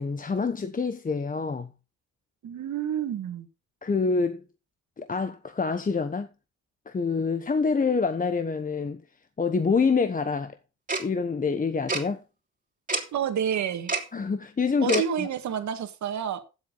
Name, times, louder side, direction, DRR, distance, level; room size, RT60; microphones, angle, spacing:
voice 1, 0.0-1.7 3.8-4.4 5.0-6.3 6.9-9.0 9.4-10.6 11.0-12.2 14.1-15.3, left 4 dB, 25° left, 1.1 m, -26 dB
voice 2, 2.4-3.5 13.1-13.9 14.8-16.4, right 9 dB, 70° right, 2.0 m, -29 dB
Tick-tock, 10.9-11.0 11.9-12.0 12.9-13.0 13.9-14.0 14.9-15.0, right 3 dB, 25° right, 3.0 m, -26 dB
12.0 x 7.7 x 4.0 m
cardioid pair, 90°, 30 cm